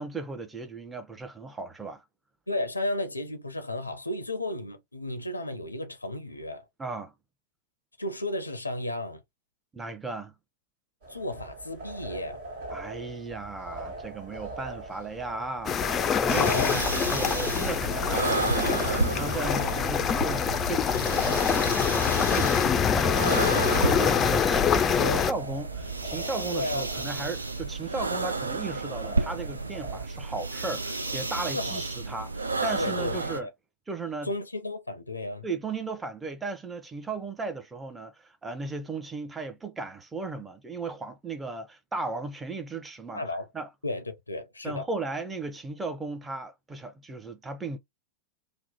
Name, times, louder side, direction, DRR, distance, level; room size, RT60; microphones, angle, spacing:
voice 1, 0.0-2.0 6.8-7.1 9.7-10.3 12.7-33.5 33.9-34.3 35.4-43.2 43.5-43.7 44.6-47.8, right 3 dB, 10° right, 0.7 m, -36 dB
voice 2, 2.5-6.6 8.0-9.2 11.1-12.4 16.4-16.8 25.0-25.3 26.5-26.8 31.5-31.8 32.8-33.5 34.2-35.5 43.1-43.5 43.8-44.9, left 1 dB, 85° left, 0.5 m, -33 dB
sound 1, 11.0-30.0, right 2 dB, 55° right, 1.4 m, -42 dB
sound 2, 15.6-25.3, left 7 dB, 25° left, 0.4 m, -25 dB
sound 3, 16.3-33.4, right 3 dB, 80° right, 0.4 m, -32 dB
2.9 x 2.0 x 4.0 m
figure-of-eight pair, 90°, 0 cm